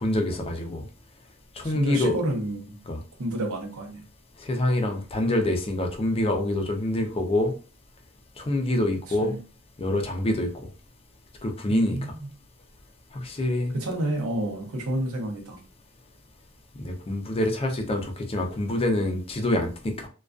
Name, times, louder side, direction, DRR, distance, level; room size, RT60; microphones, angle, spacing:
voice 1, 0.0-0.8 1.6-2.1 2.9-3.0 4.4-7.5 8.4-9.3 9.8-10.7 11.4-12.0 13.1-13.7 16.8-20.1, left 1 dB, 25° left, 4 dB, 0.4 m, -26 dB
voice 2, 1.6-2.8 3.2-4.0 9.2-9.4 11.7-12.3 13.7-15.6, right 1 dB, 85° right, 2 dB, 0.7 m, -29 dB
2.3 x 2.2 x 2.4 m, 0.34 s
head